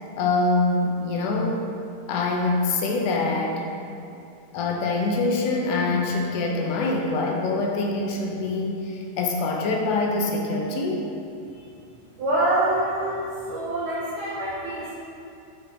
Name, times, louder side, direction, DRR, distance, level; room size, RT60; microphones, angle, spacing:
voice 1, 0.2-1.6 2.1-3.6 4.5-11.0, left 3 dB, 80° left, 0 dB, 1.9 m, -24 dB
voice 2, 12.2-14.9, right 1 dB, 75° right, -8 dB, 1.7 m, -25 dB
8.4 x 3.7 x 3.7 m, 2.7 s
omnidirectional pair, 4.0 m